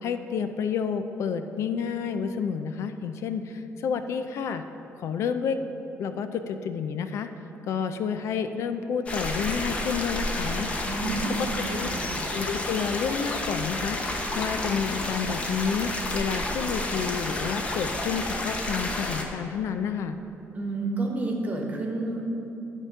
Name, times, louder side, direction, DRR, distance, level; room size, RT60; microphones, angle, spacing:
voice 1, 0.0-4.6 5.0-5.6 6.0-7.3 7.7-10.7 11.7-11.9 12.3-14.0 14.4-20.2, left 6 dB, 65° left, 9 dB, 0.4 m, -30 dB
sound 1, 9.1-19.2, left 1 dB, 25° left, 0.7 m, -30 dB
voice 2, 10.8-12.1 20.5-22.4, right 2 dB, 30° right, 0 dB, 1.1 m, -30 dB
10.5 x 3.6 x 5.6 m, 2.9 s
cardioid pair, 140°, 5 cm